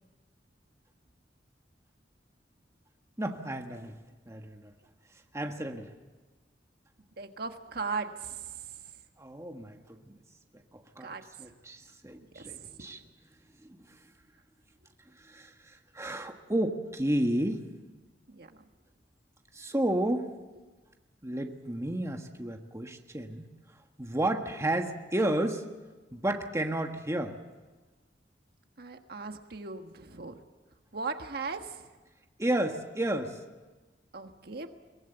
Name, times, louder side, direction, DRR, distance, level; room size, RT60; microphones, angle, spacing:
voice 1, 3.2-4.0 4.3-4.7 5.3-5.9 9.2-10.2 10.7-13.0 13.6-13.8 15.2-17.6 19.5-20.3 21.2-23.5 24.0-25.6 26.1-27.4 32.4-33.4, right 1 dB, 15° right, 4 dB, 1.4 m, -32 dB
voice 2, 7.2-8.5 11.0-11.2 12.3-12.7 18.3-18.6 28.8-30.4 30.9-31.8 34.1-34.7, right 4 dB, 60° right, 6 dB, 1.4 m, -38 dB
23.0 x 19.0 x 7.9 m, 1.3 s
head